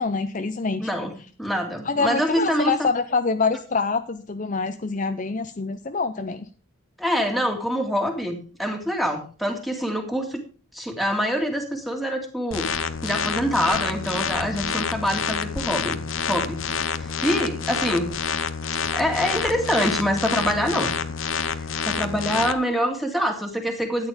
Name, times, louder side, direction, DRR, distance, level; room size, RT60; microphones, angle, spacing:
voice 1, 0.0-0.9 1.8-6.5, left 4 dB, 35° left, 9 dB, 0.6 m, -25 dB
voice 2, 0.8-2.7 7.0-10.4 10.7-12.7 13.0-16.6 16.9-18.1 18.9-20.9 21.4-24.1, equal, ahead, 3 dB, 2.1 m, -25 dB
sound 1, 12.5-22.5, left 6 dB, 70° left, 0.9 m, -28 dB
12.5 x 9.4 x 5.0 m, 0.38 s
head